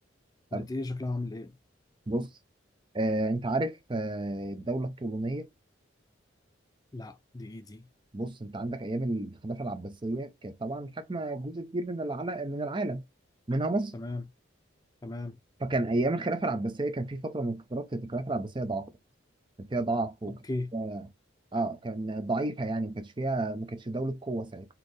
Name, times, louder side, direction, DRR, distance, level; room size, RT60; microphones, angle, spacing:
voice 1, 0.5-1.6 6.9-7.9 13.9-14.2 15.0-15.4 20.3-20.7, left 2 dB, 20° left, 0.4 m, -36 dB
voice 2, 2.9-5.5 8.1-13.0 13.5-13.9 15.6-18.9 19.6-20.4 20.7-21.1 21.5-24.7, right 2 dB, 25° right, 0.6 m, -31 dB
4.2 x 2.9 x 3.1 m
head